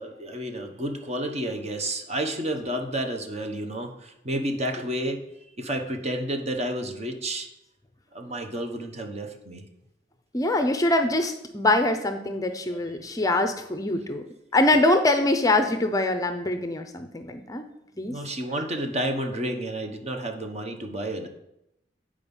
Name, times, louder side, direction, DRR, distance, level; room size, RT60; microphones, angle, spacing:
voice 1, 0.0-7.5 8.1-9.6 12.7-12.8 18.0-21.3, right 1 dB, 35° right, 4 dB, 1.0 m, -31 dB
voice 2, 10.3-14.2 14.5-17.6 18.0-18.1, left 2 dB, 20° left, 7 dB, 0.5 m, -23 dB
8.5 x 4.9 x 5.4 m, 0.82 s
head